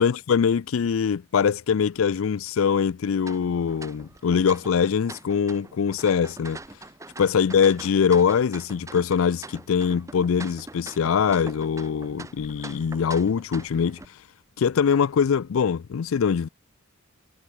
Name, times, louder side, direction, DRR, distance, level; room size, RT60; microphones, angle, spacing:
voice 1, 0.0-6.6 7.2-14.0 14.6-16.5, left 6 dB, 75° left, 0.4 m, -23 dB
sound 1, 3.2-14.1, right 2 dB, 15° right, 0.8 m, -43 dB
head